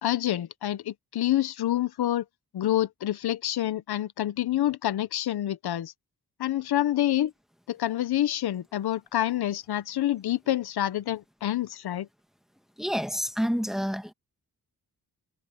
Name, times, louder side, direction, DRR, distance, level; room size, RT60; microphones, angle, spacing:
voice 1, 0.0-2.2 2.5-5.9 6.4-7.3 7.7-12.1, left 13 dB, 85° left, 0.8 m, -27 dB
voice 2, 12.8-14.1, equal, ahead, 1.6 m, -28 dB
cardioid pair, 85°, 37 cm